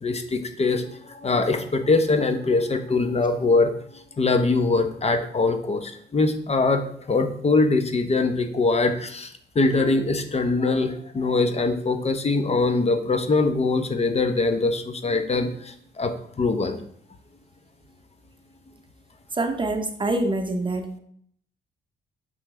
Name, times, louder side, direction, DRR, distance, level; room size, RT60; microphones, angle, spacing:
voice 1, 0.0-3.7 4.2-6.8 7.1-16.8, left 3 dB, 30° left, 7 dB, 0.8 m, -23 dB
voice 2, 19.3-21.0, right 2 dB, 25° right, 6 dB, 0.8 m, -25 dB
6.2 x 5.7 x 3.3 m, 0.64 s
cardioid pair, 90°, 20 cm